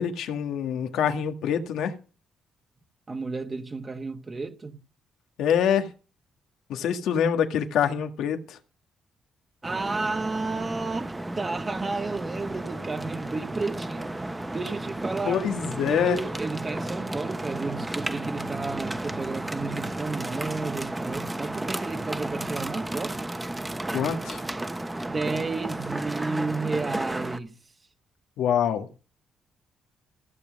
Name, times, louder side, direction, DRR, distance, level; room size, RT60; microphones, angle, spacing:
voice 1, 0.0-1.9 5.4-5.9 6.7-8.6 15.3-16.2 23.9-24.4 28.4-28.9, left 8 dB, 85° left, 1.7 m, -25 dB
voice 2, 3.1-4.8 9.6-14.1 14.5-15.5 15.9-23.2 25.0-27.6, right 3 dB, 30° right, 1.4 m, -32 dB
sound 1, 9.6-27.4, right 1 dB, 15° right, 1.1 m, -33 dB
15.0 x 7.3 x 6.4 m
cardioid pair, 90°, 0 cm